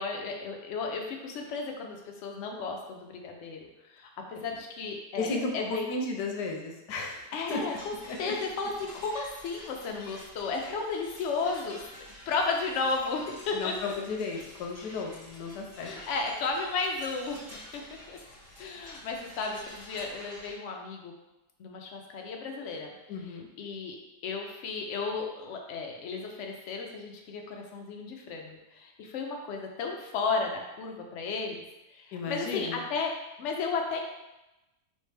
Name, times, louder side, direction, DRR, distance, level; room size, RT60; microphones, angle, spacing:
voice 1, 0.0-3.7 3.9-5.9 7.3-13.9 15.8-17.4 17.7-17.8 18.1-18.2 18.6-21.1 21.6-22.9 23.6-24.0 24.2-31.6 31.9-33.1 33.4-34.0, left 4 dB, 65° left, 2 dB, 0.7 m, -34 dB
voice 2, 5.2-5.5 5.9-7.6 8.1-8.2 10.7-10.8 13.5-16.0 23.1-23.5 32.1-32.8, left 3 dB, 80° left, 1 dB, 1.3 m, -34 dB
sound 1, 7.4-20.5, left 1 dB, 50° right, 2.0 m, -49 dB
3.6 x 3.2 x 3.3 m, 0.97 s
omnidirectional pair, 1.7 m